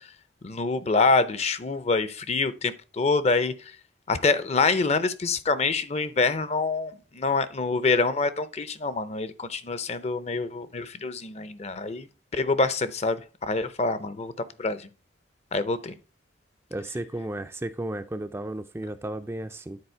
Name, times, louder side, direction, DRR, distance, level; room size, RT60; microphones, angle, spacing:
voice 1, 0.4-3.5 4.1-12.1 12.3-14.3 14.6-14.8 15.5-15.9, left 3 dB, 35° left, 0.6 m, -26 dB
voice 2, 16.7-19.8, right 1 dB, 15° right, 0.4 m, -34 dB
9.6 x 4.2 x 4.4 m
head